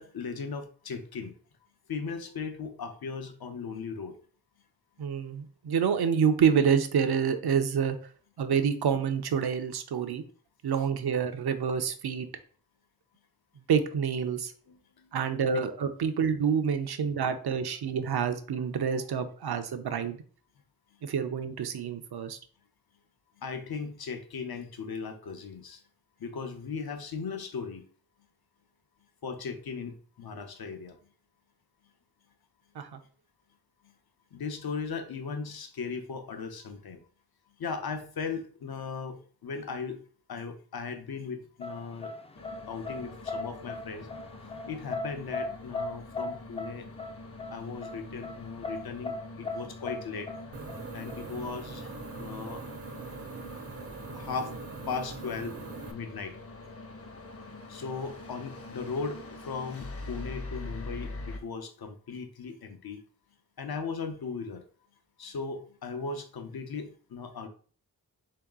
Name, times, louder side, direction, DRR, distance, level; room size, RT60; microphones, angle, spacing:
voice 1, 0.0-1.3 1.9-4.1 14.7-15.1 15.5-15.6 23.4-25.8 26.2-27.8 29.2-31.0 33.8-33.9 34.3-37.0 37.6-40.0 40.3-42.1 42.7-44.1 44.7-46.9 47.5-50.3 50.9-52.6 54.1-54.6 54.9-55.6 55.9-56.4 57.7-63.0 63.6-64.6 65.2-67.5, left 5 dB, 75° left, 7 dB, 0.7 m, -37 dB
voice 2, 5.0-8.0 8.4-10.2 10.6-12.3 13.7-14.5 15.1-20.2 21.0-22.4 32.8-33.0, right 7 dB, 85° right, 9 dB, 0.6 m, -27 dB
sound 1, 41.6-51.5, left 3 dB, 15° left, 0.3 m, -37 dB
sound 2, 42.4-61.4, left 2 dB, 40° left, 0.7 m, -44 dB
sound 3, 50.5-55.9, right 4 dB, 40° right, 0.5 m, -42 dB
3.8 x 2.9 x 3.6 m, 0.43 s
wide cardioid pair, 85°, 37 cm